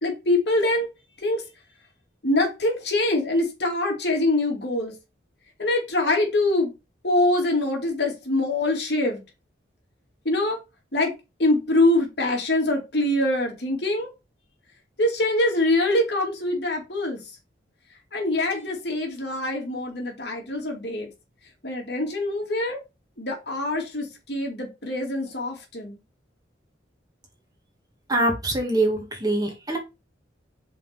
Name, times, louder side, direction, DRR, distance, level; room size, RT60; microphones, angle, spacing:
voice 1, 0.0-0.9 1.2-1.4 2.2-4.9 5.6-6.7 7.0-9.2 10.2-10.6 10.9-11.1 11.4-14.1 15.0-17.2 18.1-21.1 21.6-22.8 23.2-26.0, left 2 dB, 65° left, 1 dB, 2.5 m, -24 dB
voice 2, 28.1-29.8, right 1 dB, 20° right, 1 dB, 1.9 m, -24 dB
5.6 x 4.3 x 5.2 m, 0.26 s
head